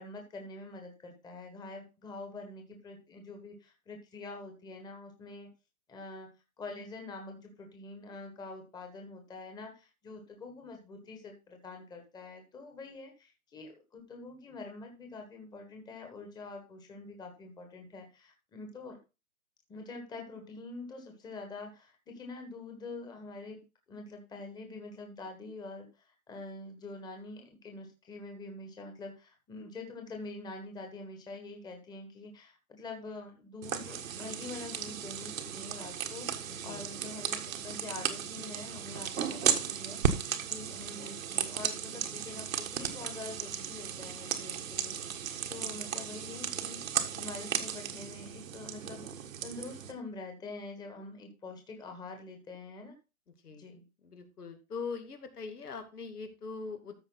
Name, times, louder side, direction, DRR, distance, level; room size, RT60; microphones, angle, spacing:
voice 1, 0.0-5.5 5.9-6.3 6.6-19.0 19.7-46.8 47.1-52.9 53.6-53.9, left 3 dB, 10° left, 3 dB, 1.5 m, -45 dB
sound 1, 33.6-49.9, right 8 dB, 60° right, 1.5 m, -35 dB
voice 2, 36.5-36.9 53.4-53.7 54.0-56.9, left 5 dB, 90° left, 6 dB, 2.4 m, -42 dB
14.0 x 5.0 x 4.0 m, 0.29 s
hypercardioid pair, 145°, 44 cm